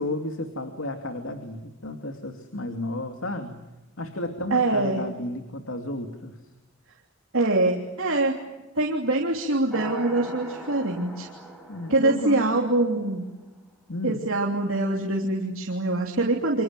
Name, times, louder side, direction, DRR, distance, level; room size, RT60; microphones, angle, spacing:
voice 1, 0.0-3.6 4.0-6.4 11.7-12.5 13.9-14.2, left 2 dB, 70° left, 5 dB, 2.6 m, -33 dB
voice 2, 4.5-5.0 7.3-8.4 8.7-11.3 11.9-13.3 14.0-16.6, right 2 dB, 70° right, -1 dB, 3.2 m, -24 dB
sound 1, 9.7-13.1, right 2 dB, ahead, 6.1 m, -41 dB
29.0 x 26.5 x 7.7 m, 1.0 s
head